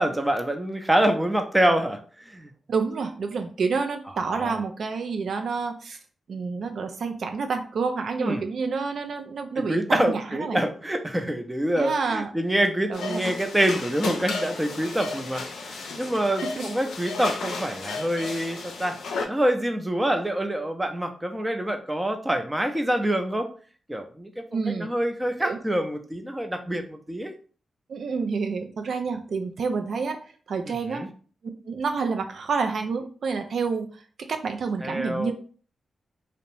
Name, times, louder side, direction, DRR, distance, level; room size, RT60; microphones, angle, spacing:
voice 1, 0.0-2.5 4.2-4.6 8.2-8.4 9.6-19.0 19.3-23.5 23.9-27.3 30.7-31.1 34.8-35.3, right 1 dB, 15° right, 6 dB, 0.5 m, -26 dB
voice 2, 2.7-6.0 6.3-10.6 11.7-12.3 12.9-13.2 16.6-16.7 24.5-24.9 25.4-25.6 27.9-30.2 30.5-31.1 31.7-33.9 34.3-35.3, right 5 dB, 70° right, 6 dB, 0.3 m, -28 dB
sound 1, 12.9-19.3, left 4 dB, 80° left, 0.4 m, -33 dB
2.5 x 2.0 x 3.0 m, 0.41 s
supercardioid pair, 45°, 0 cm